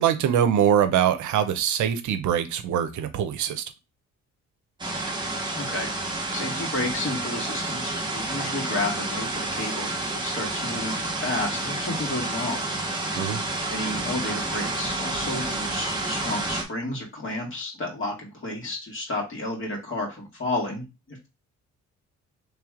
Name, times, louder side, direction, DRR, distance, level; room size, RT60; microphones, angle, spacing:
voice 1, 0.0-3.6 13.2-13.4, right 9 dB, 75° right, 0.7 m, -23 dB
sound 1, 4.8-16.6, right 2 dB, 15° right, 1.1 m, -30 dB
voice 2, 5.5-5.9 6.3-12.6 13.7-21.3, left 2 dB, 40° left, 2.0 m, -32 dB
3.3 x 3.1 x 3.7 m
cardioid pair, 90°, 30 cm